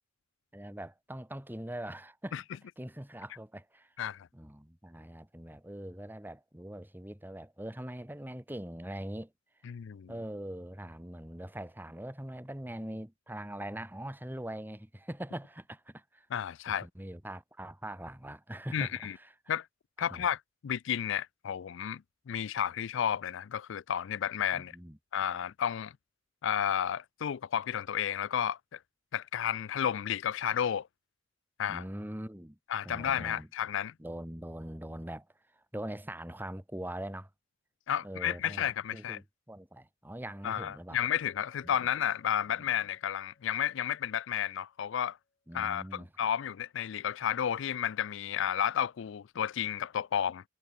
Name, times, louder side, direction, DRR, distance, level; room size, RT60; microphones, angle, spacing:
voice 1, 0.5-2.4 2.8-3.9 4.3-9.3 10.1-16.3 16.7-19.3 20.0-20.3 24.5-25.0 31.7-32.6 32.8-33.5 34.0-35.3 35.7-37.3 38.0-41.0 41.6-41.8 42.6-42.7 45.5-46.1, right 1 dB, 10° right, 2.1 m, -42 dB
voice 2, 9.7-10.1 16.3-16.9 18.7-19.1 19.5-19.7 20.0-22.0 22.3-24.7 25.1-25.9 26.4-28.8 29.1-30.9 31.6-31.8 32.7-33.9 37.9-39.2 40.4-45.2 45.5-50.4, left 9 dB, 70° left, 0.4 m, -32 dB
Chink clink, 45.3-45.4, left 2 dB, 40° left, 5.3 m, -65 dB
head